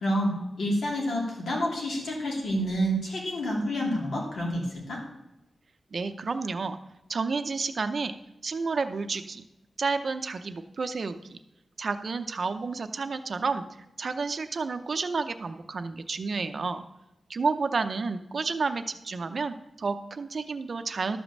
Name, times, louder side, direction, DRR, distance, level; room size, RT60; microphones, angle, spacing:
voice 1, 0.0-5.0, equal, 90° left, -2 dB, 3.2 m, -28 dB
voice 2, 5.9-6.8 7.1-8.1 8.4-9.4 9.8-11.4 11.8-13.7 14.0-16.8 17.3-21.2, right 4 dB, 45° right, 9 dB, 0.6 m, -30 dB
12.5 x 5.2 x 7.3 m, 0.93 s
wide cardioid pair, 175°, 0 cm